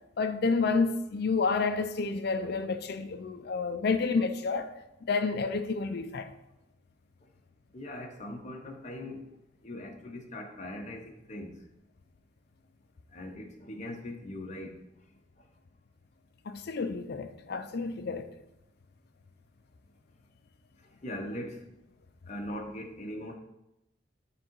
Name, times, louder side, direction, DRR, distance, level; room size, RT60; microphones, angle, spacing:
voice 1, 0.2-4.7 5.0-6.3 16.5-18.3, left 4 dB, 55° left, 0.5 m, -29 dB
voice 2, 7.7-9.2 9.6-11.6 13.1-14.7 21.0-21.6 22.3-23.3, left 1 dB, 40° left, 1.1 m, -40 dB
9.0 x 3.8 x 4.6 m
head